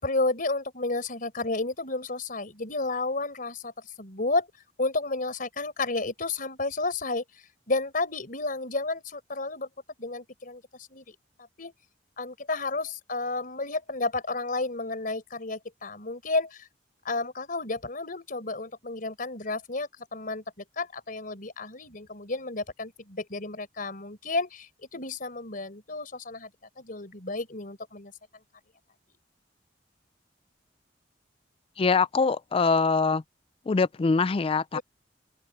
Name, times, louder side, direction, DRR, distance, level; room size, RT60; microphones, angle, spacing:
voice 1, 0.0-3.7 4.0-4.5 4.8-7.2 7.7-9.7 10.0-10.6 10.9-11.1 11.6-11.7 12.2-16.7 17.0-20.4 20.8-26.5 26.8-28.1 34.7-34.8, left 3 dB, 50° left, 4.5 m, -31 dB
voice 2, 31.8-33.2 33.7-34.8, left 4 dB, 30° left, 0.4 m, -23 dB
open air
head